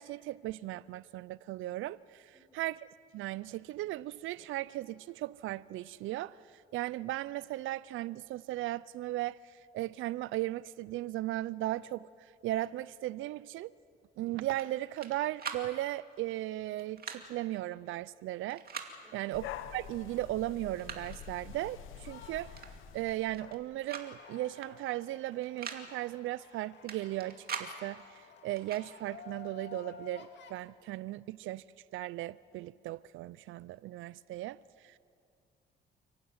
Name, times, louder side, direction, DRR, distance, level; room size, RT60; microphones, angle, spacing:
voice 1, 0.0-2.8 3.1-6.4 6.7-12.1 12.4-13.7 14.2-18.6 19.1-19.5 19.7-22.5 22.9-31.6 31.9-35.0, right 16 dB, 85° right, 0.4 m, -37 dB
sound 1, 14.5-15.1 15.4-15.7 16.8-17.2 18.5-18.9 20.0-20.1 20.5-21.2 22.6-22.7 23.0-23.6 23.9-24.1 24.3-24.4 25.4-25.8 26.9-27.7 28.6-28.8, right 6 dB, 50° right, 2.4 m, -42 dB
voice 2, 19.0-19.3, equal, 5° left, 4.1 m, -64 dB
sound 2, 19.3-23.6, left 10 dB, 90° left, 1.0 m, -46 dB
sound 3, 21.5-30.5, left 6 dB, 65° left, 2.2 m, -54 dB
29.5 x 12.0 x 9.5 m
cardioid pair, 90°, 20 cm